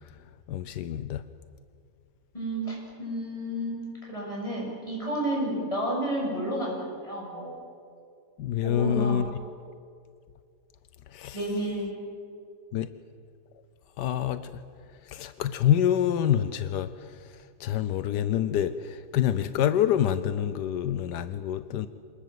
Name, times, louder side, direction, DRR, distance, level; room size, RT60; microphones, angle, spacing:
voice 1, 0.5-1.2 8.4-9.2 11.1-11.4 12.7-12.9 14.0-14.5 15.1-16.9 17.6-21.9, left 10 dB, 85° left, 13 dB, 1.4 m, -26 dB
voice 2, 2.3-3.8 4.1-7.6 8.6-9.2 11.3-12.0, right 1 dB, 20° left, -3 dB, 8.0 m, -31 dB
27.0 x 20.0 x 7.8 m, 2.3 s
omnidirectional pair, 1.7 m